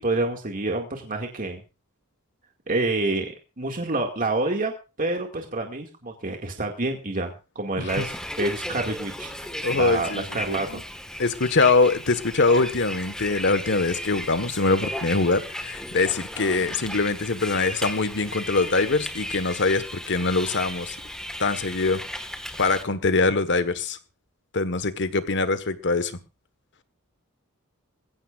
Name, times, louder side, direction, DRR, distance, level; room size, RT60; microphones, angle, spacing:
voice 1, 0.0-1.6 2.7-9.3 9.7-10.8, right 2 dB, 40° right, 2.2 m, -28 dB
Bus, 7.9-22.8, left 1 dB, 5° left, 1.7 m, -35 dB
voice 2, 9.6-10.8 11.2-20.9 21.4-22.0 22.6-24.0 24.5-26.2, left 3 dB, 55° left, 1.5 m, -23 dB
21.0 x 16.0 x 2.5 m
head